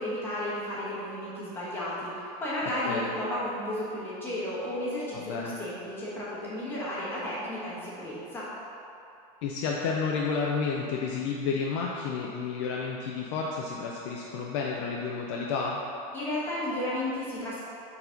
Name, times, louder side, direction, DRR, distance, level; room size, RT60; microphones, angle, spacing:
voice 1, 0.0-8.5 16.1-17.6, left 1 dB, 10° left, -8 dB, 1.2 m, -33 dB
voice 2, 5.1-5.5 9.4-15.8, left 5 dB, 45° left, -2 dB, 0.5 m, -31 dB
4.8 x 4.1 x 5.1 m, 2.7 s
supercardioid pair, 175°, 21 cm